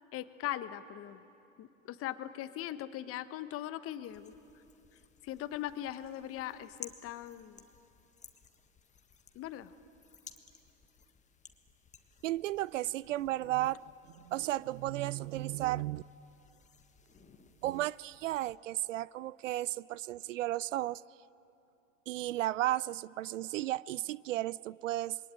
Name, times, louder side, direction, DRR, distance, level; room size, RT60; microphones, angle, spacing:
voice 1, 0.1-1.2 1.6-4.3 5.2-7.6 9.3-9.7, left 13 dB, 35° left, 1.1 m, -40 dB
sound 1, 4.0-18.6, left 6 dB, 15° left, 1.5 m, -57 dB
voice 2, 12.2-13.8 14.2-16.0 17.6-21.0 22.1-25.2, right 15 dB, 65° right, 0.5 m, -34 dB
27.0 x 22.5 x 9.2 m
hypercardioid pair, 100°, 41 cm